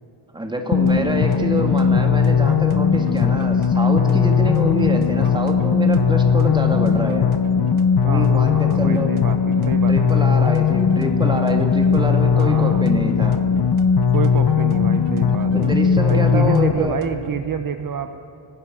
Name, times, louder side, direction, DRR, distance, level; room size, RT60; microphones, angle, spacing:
voice 1, 0.3-7.3 8.0-9.1 9.9-13.4 15.5-17.0, right 1 dB, 10° right, 3 dB, 2.2 m, -25 dB
sound 1, 0.7-16.7, left 6 dB, 50° left, 1.0 m, -18 dB
sound 2, 0.9-17.5, right 7 dB, 85° right, 1.5 m, -37 dB
voice 2, 8.0-10.6 12.3-12.8 14.1-15.5 16.1-18.1, right 7 dB, 45° right, 8 dB, 0.8 m, -28 dB
30.0 x 17.0 x 6.2 m, 2.7 s
wide cardioid pair, 175°, 49 cm